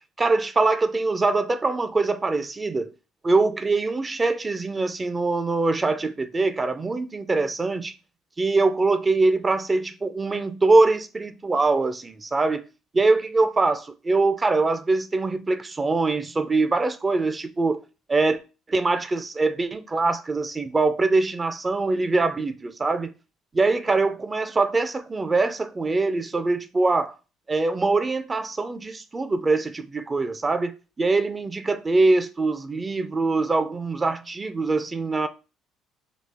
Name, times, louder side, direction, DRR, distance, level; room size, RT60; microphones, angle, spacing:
voice 1, 0.2-2.9 3.2-7.9 8.4-12.6 12.9-17.8 18.1-18.4 18.7-23.1 23.5-27.1 27.5-35.3, right 3 dB, 30° right, 0.5 m, -23 dB
4.2 x 2.9 x 3.4 m
hypercardioid pair, 60°, 0 cm